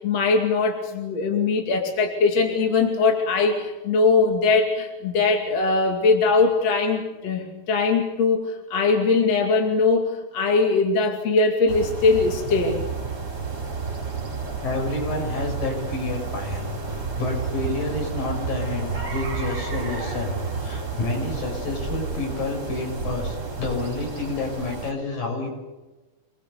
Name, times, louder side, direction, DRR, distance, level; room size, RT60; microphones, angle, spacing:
voice 1, 0.0-12.8, left 4 dB, 50° left, 2 dB, 3.4 m, -21 dB
sound 1, 11.7-24.9, right 4 dB, 25° right, 4.5 m, -31 dB
voice 2, 14.6-25.5, left 3 dB, 75° left, 1 dB, 8.4 m, -29 dB
27.5 x 21.5 x 6.9 m, 1.2 s
omnidirectional pair, 4.1 m